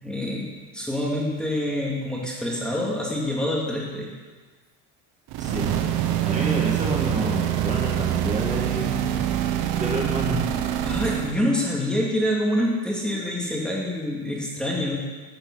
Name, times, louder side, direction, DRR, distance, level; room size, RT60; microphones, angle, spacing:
voice 1, 0.0-0.5 0.7-4.1 10.8-15.0, left 1 dB, ahead, -4 dB, 2.0 m, -26 dB
sound 1, 5.3-11.4, right 11 dB, 75° right, 0.9 m, -25 dB
voice 2, 6.2-9.0 9.7-10.5, right 1 dB, 20° right, -3 dB, 2.0 m, -28 dB
9.7 x 7.3 x 5.9 m, 1.4 s
cardioid pair, 115°, 37 cm